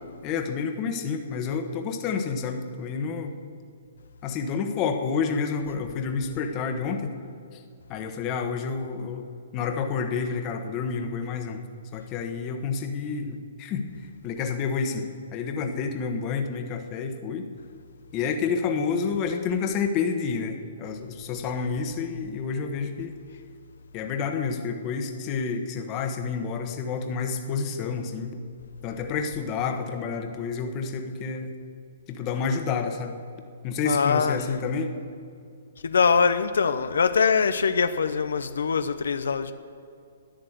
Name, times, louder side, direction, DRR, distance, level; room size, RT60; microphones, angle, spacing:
voice 1, 0.2-3.3 4.2-7.1 7.5-7.6 7.9-9.2 9.5-11.6 11.9-13.8 14.2-15.1 15.3-17.4 18.1-23.2 23.9-28.3 28.8-31.5 32.1-33.2 33.6-34.9, left 5 dB, 25° left, 1.2 m, -29 dB
voice 2, 33.9-34.4 35.8-39.5, left 5 dB, 85° left, 0.6 m, -23 dB
11.5 x 10.5 x 8.1 m
hypercardioid pair, 150°, 0 cm